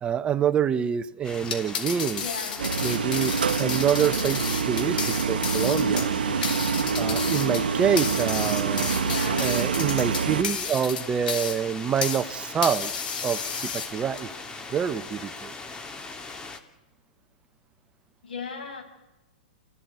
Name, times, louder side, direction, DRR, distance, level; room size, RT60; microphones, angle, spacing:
voice 1, 0.0-2.2 2.8-6.1 6.9-8.9 9.4-12.9 13.2-14.3 14.7-15.5, right 8 dB, 20° right, 14 dB, 0.9 m, -26 dB
sound 1, 1.2-16.6, left 3 dB, 15° left, 2.3 m, -40 dB
sound 2, 1.4-12.3 12.6-14.2, left 6 dB, 70° left, 4.3 m, -32 dB
voice 2, 2.2-2.6 9.0-9.6 18.2-18.8, left 5 dB, 90° left, 4 dB, 6.6 m, -36 dB
sound 3, 2.6-10.4, right 6 dB, 85° right, 0.9 m, -26 dB
27.5 x 16.5 x 9.6 m, 0.99 s
hypercardioid pair, 125°, 5 cm